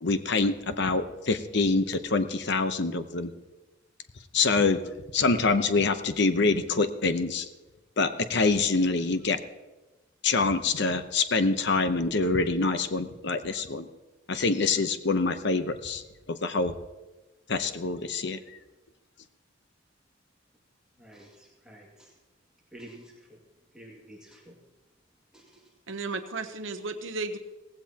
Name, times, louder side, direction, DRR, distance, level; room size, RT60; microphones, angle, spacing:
voice 1, 0.0-3.3 4.3-4.8 5.1-7.5 8.0-9.4 10.2-13.9 14.3-16.0 16.3-16.7 17.5-18.6, left 3 dB, 60° left, 9 dB, 0.9 m, -25 dB
voice 2, 21.0-22.1 22.7-23.4 23.7-24.6 25.3-25.6, right 1 dB, 5° right, -3 dB, 2.2 m, -50 dB
voice 3, 25.9-27.4, right 3 dB, 75° right, 8 dB, 0.9 m, -34 dB
17.5 x 15.5 x 2.9 m, 1.1 s
head